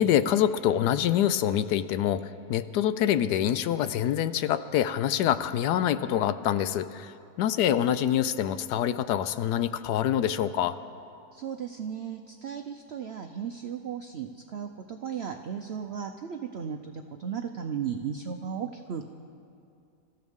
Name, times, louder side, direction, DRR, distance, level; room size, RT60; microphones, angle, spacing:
voice 1, 0.0-10.8, left 10 dB, 75° left, 13 dB, 1.1 m, -26 dB
voice 2, 11.3-19.0, right 7 dB, 70° right, 5 dB, 0.6 m, -35 dB
26.5 x 14.5 x 3.6 m, 2.5 s
omnidirectional pair, 1.8 m